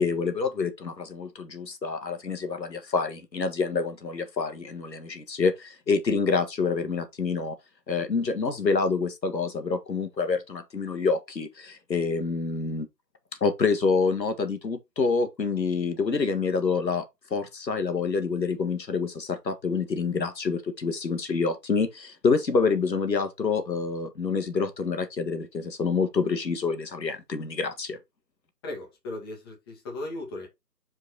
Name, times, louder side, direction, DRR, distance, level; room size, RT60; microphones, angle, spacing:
voice 1, 0.0-7.6 7.9-12.9 13.4-17.1 17.3-28.0, left 4 dB, 90° left, 1.9 m, -27 dB
voice 2, 28.6-30.5, left 2 dB, 15° left, 1.7 m, -37 dB
5.6 x 4.6 x 4.1 m
hypercardioid pair, 165°, 49 cm